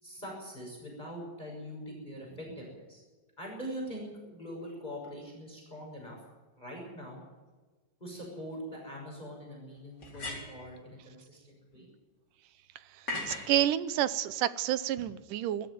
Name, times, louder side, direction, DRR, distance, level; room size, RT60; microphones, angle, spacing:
voice 1, 0.0-3.0 3.4-6.2 6.6-7.2 8.0-11.9, equal, 10° left, -1 dB, 6.4 m, -43 dB
sound 1, 8.1-8.2 10.0-10.7 13.1-13.5, left 2 dB, 30° left, 4.3 m, -38 dB
voice 2, 13.3-15.7, right 12 dB, 75° right, 15 dB, 2.3 m, -29 dB
20.5 x 14.0 x 9.3 m, 1.3 s
omnidirectional pair, 3.9 m